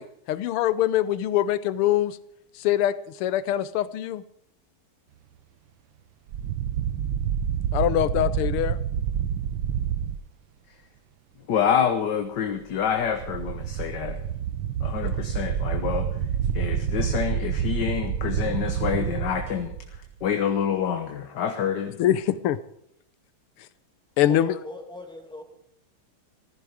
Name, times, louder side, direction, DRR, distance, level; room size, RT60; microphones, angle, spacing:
voice 1, 0.0-2.2 2.6-4.2 7.7-8.8 15.0-15.1 22.0-22.6 24.2-24.5, left 12 dB, 85° left, 16 dB, 1.7 m, -24 dB
sound 1, 6.3-10.2 13.0-20.3, right 9 dB, 70° right, 1.5 m, -28 dB
voice 2, 11.5-14.2 14.8-16.1 16.5-22.0, left 8 dB, 60° left, 6 dB, 1.6 m, -27 dB
voice 3, 24.3-25.4, left 1 dB, ahead, 1 dB, 2.6 m, -38 dB
15.0 x 14.5 x 5.1 m, 0.72 s
omnidirectional pair, 2.4 m